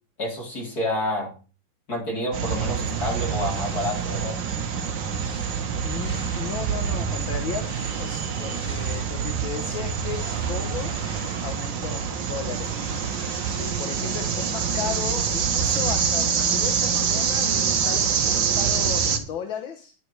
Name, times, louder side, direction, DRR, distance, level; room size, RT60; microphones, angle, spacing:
voice 1, 0.2-1.3 1.9-4.4, left 1 dB, 45° left, -1 dB, 4.8 m, -29 dB
sound 1, 2.3-19.2, right 6 dB, 60° right, 2.0 m, -26 dB
sound 2, 2.4-4.4 4.8-6.9 7.5-9.3 9.7-12.0 12.2-14.2, right 1 dB, 25° left, 6.9 m, -46 dB
voice 2, 5.8-7.7 8.0-10.9 11.4-12.9 13.6-19.9, left 7 dB, 70° left, 5 dB, 2.1 m, -35 dB
11.0 x 10.5 x 4.8 m, 0.36 s
omnidirectional pair, 2.3 m